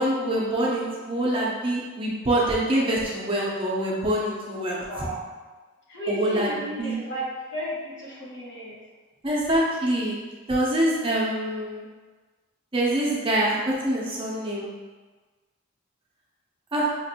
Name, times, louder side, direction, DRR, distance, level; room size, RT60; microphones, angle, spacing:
voice 1, 0.0-5.1 6.1-6.5 6.8-6.9 9.2-10.1 10.5-11.8 12.7-14.7 16.7-16.9, right 1 dB, 25° right, -4 dB, 0.5 m, -25 dB
voice 2, 4.8-5.2 5.9-7.3 7.5-8.8, right 1 dB, 55° left, -7 dB, 1.4 m, -33 dB
5.0 x 2.5 x 2.8 m, 1.3 s
head